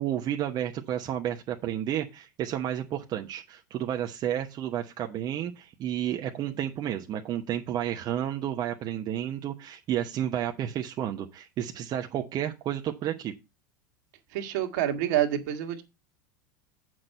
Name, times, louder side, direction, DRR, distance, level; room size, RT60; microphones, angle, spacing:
voice 1, 0.0-13.3, right 11 dB, 40° right, 3 dB, 1.0 m, -31 dB
voice 2, 14.3-15.8, right 11 dB, 65° right, 6 dB, 1.7 m, -27 dB
7.6 x 6.3 x 5.4 m, 0.25 s
hypercardioid pair, 95°, 10 cm